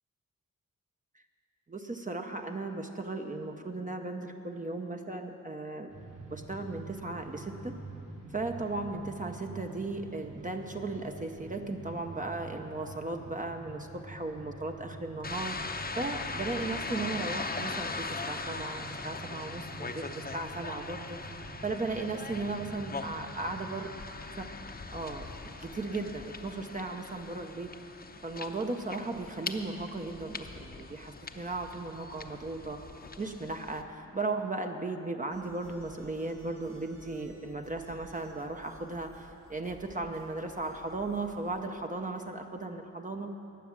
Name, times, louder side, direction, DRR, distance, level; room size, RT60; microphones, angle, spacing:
voice 1, 1.7-5.9 6.3-7.7 8.3-23.9 24.4-24.5 24.9-27.7 28.2-32.8 33.2-43.3, right 3 dB, 25° right, 3 dB, 0.8 m, -36 dB
sound 1, 5.9-23.8, right 3 dB, 75° right, 3.9 m, -47 dB
sound 2, 15.2-33.8, left 3 dB, 30° left, 0.8 m, -40 dB
sound 3, 35.3-41.7, right 1 dB, 60° right, 3.4 m, -55 dB
19.5 x 7.2 x 7.4 m, 2.9 s
wide cardioid pair, 95°, 32 cm